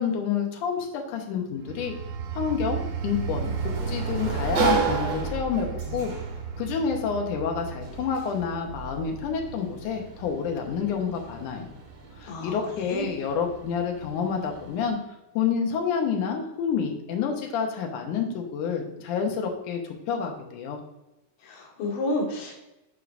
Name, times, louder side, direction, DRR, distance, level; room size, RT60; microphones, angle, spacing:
voice 1, 0.0-1.9 2.3-6.1 6.6-11.7 12.2-15.0 15.4-20.8, left 6 dB, 70° left, 3 dB, 2.1 m, -28 dB
sound 1, 1.6-11.9 12.4-12.6, right 7 dB, 85° right, 2.4 m, -35 dB
Sliding door, 2.2-14.9, right 4 dB, 55° right, 2.0 m, -34 dB
voice 2, 12.3-12.6 12.9-13.1 21.4-22.6, left 1 dB, 85° left, -3 dB, 3.8 m, -30 dB
11.0 x 4.6 x 2.6 m, 0.96 s
omnidirectional pair, 4.3 m